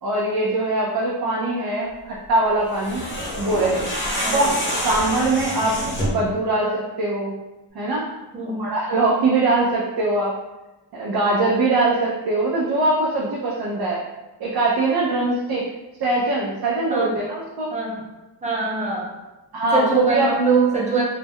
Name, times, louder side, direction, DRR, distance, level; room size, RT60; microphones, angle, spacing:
voice 1, 0.0-3.0 3.4-3.9 4.3-5.7 6.1-7.3 7.7-8.1 8.5-10.3 10.9-14.0 14.4-15.6 16.0-17.7 19.5-20.3, right 2 dB, 60° right, -4 dB, 0.5 m, -22 dB
sound 1, 2.7-6.3, equal, 25° left, 0.7 m, -27 dB
voice 2, 8.3-8.7 16.9-17.2 17.7-18.0 18.4-19.1 19.7-21.0, right 4 dB, 15° right, -4 dB, 0.6 m, -22 dB
2.2 x 2.1 x 3.4 m, 1.1 s
wide cardioid pair, 150°, 42 cm